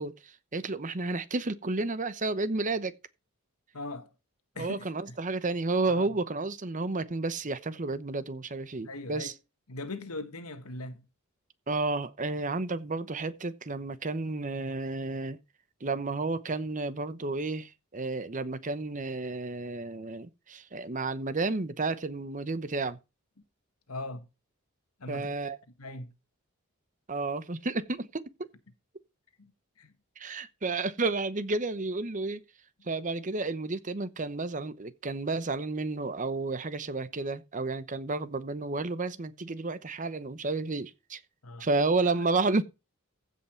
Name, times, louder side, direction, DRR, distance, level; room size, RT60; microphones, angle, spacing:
voice 1, 0.0-2.9 4.6-9.3 11.7-15.4 15.8-23.0 25.1-25.6 27.1-28.5 30.2-32.4 32.9-41.2 41.6-42.6, right 3 dB, 35° right, 0.9 m, -31 dB
voice 2, 3.7-4.1 4.5-5.1 5.9-6.1 8.8-9.3 9.7-11.0 23.9-24.2 25.0-25.3 25.8-26.1 29.4-29.5 29.8-29.9 41.4-41.7, left 2 dB, 85° left, 1.6 m, -40 dB
15.0 x 5.7 x 4.4 m
head